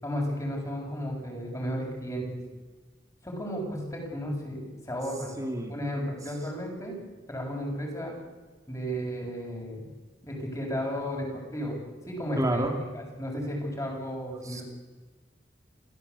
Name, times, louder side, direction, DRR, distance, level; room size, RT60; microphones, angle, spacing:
voice 1, 0.0-2.4 3.2-5.3 5.7-7.0 7.3-8.2 8.7-9.9 10.2-11.8 12.1-12.7 12.9-14.6, equal, 20° left, -1 dB, 7.1 m, -33 dB
voice 2, 5.4-5.7 12.4-12.8 14.4-14.6, right 1 dB, 20° right, 3 dB, 2.7 m, -29 dB
27.5 x 16.0 x 8.4 m, 1.2 s
head